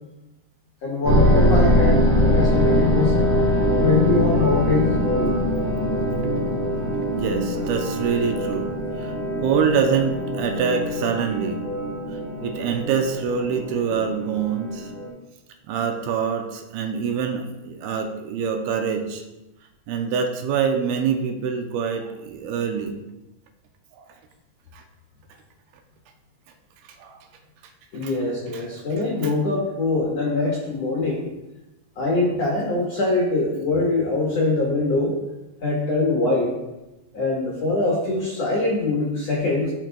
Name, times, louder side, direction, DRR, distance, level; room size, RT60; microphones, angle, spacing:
voice 1, 0.8-3.2 3.8-5.4 27.9-31.3 32.0-35.2 35.6-36.5 37.1-39.7, left 3 dB, 65° left, -5 dB, 1.6 m, -23 dB
sound 1, 1.0-15.1, equal, 40° right, 1.9 m, -22 dB
voice 2, 7.1-8.7 9.0-11.6 12.1-14.9 15.7-19.2 19.9-23.0 23.9-24.1 24.7-24.8 27.0-27.2 28.0-28.1, right 6 dB, 80° right, 4 dB, 2.4 m, -25 dB
11.5 x 6.0 x 2.2 m, 0.98 s
omnidirectional pair, 4.5 m